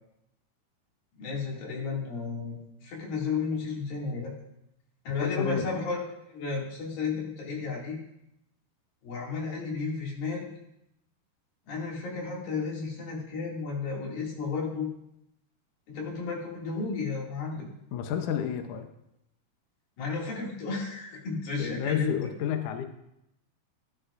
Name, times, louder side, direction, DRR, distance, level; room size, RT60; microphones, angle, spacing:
voice 1, 1.2-4.3 5.1-6.0 6.3-8.0 9.0-10.5 11.7-14.9 15.9-17.7 20.0-22.2, left 4 dB, 60° left, -3 dB, 4.1 m, -33 dB
voice 2, 5.2-5.7 17.9-18.9 21.6-22.9, left 9 dB, 80° left, 6 dB, 1.8 m, -30 dB
16.0 x 11.0 x 2.6 m, 0.81 s
omnidirectional pair, 4.7 m